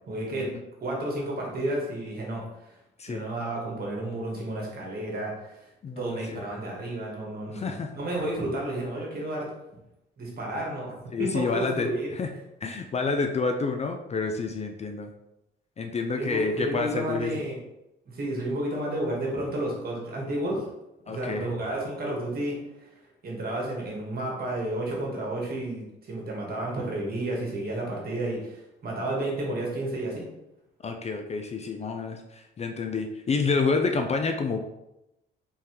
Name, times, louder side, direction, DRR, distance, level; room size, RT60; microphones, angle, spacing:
voice 1, 0.1-0.5 0.8-2.4 3.1-5.6 6.0-9.5 10.2-12.1 16.1-17.6 18.0-20.6 21.1-22.9 23.2-30.3, right 1 dB, 50° right, -2 dB, 1.4 m, -31 dB
voice 2, 5.8-6.4 7.5-7.9 11.1-12.3 12.6-15.1 15.8-17.3 21.1-21.5 30.8-34.6, left 4 dB, 35° left, 5 dB, 0.4 m, -29 dB
3.7 x 3.2 x 3.0 m, 0.89 s
cardioid pair, 90°, 20 cm